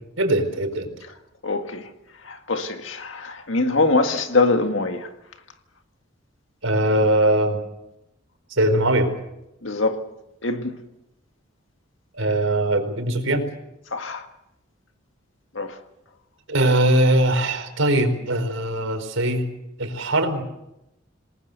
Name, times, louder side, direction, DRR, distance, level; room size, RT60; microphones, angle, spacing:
voice 1, 0.2-0.9 6.6-7.6 8.5-9.1 12.2-13.4 16.5-19.4 19.8-20.4, right 1 dB, 90° right, 4.7 m, -21 dB
voice 2, 1.4-1.8 2.2-5.1 9.6-10.0 10.4-10.7 13.9-14.3 15.6-15.8, left 3 dB, 70° left, 1.9 m, -23 dB
27.5 x 20.5 x 6.8 m
head